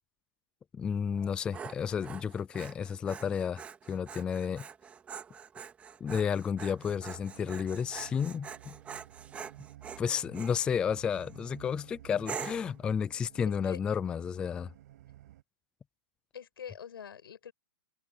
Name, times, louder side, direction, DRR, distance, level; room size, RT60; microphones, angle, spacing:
voice 1, 0.7-3.6 3.9-4.7 6.0-8.8 10.0-14.7, left 7 dB, 10° left, 0.4 m, -32 dB
Dog, 1.1-10.6 11.1-11.5 12.2-12.8, right 7 dB, 10° right, 2.4 m, -45 dB
sound 1, 6.8-15.4, right 14 dB, 50° right, 6.0 m, -54 dB
voice 2, 13.5-13.8 16.3-17.5, left 8 dB, 90° left, 7.5 m, -45 dB
hypercardioid pair, 165°, 12 cm